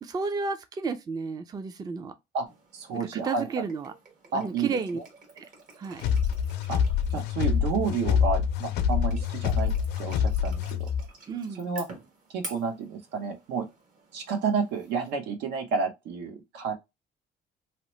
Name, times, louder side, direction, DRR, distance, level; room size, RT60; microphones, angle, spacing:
voice 1, 0.0-2.1 2.9-3.9 4.3-5.0 5.4-5.5 5.8-6.0 11.3-11.7, right 4 dB, 25° right, 0.4 m, -32 dB
sound 1, 2.5-15.1, right 3 dB, 55° right, 1.2 m, -49 dB
voice 2, 2.7-3.5 4.3-5.0 6.7-6.8 7.1-9.7 10.0-10.9 11.6-11.9 12.3-13.7 14.1-16.7, right 5 dB, 85° right, 0.7 m, -30 dB
sound 2, 6.0-11.1, left 7 dB, 80° left, 0.4 m, -26 dB
2.9 x 2.0 x 3.0 m
cardioid pair, 110°, 17 cm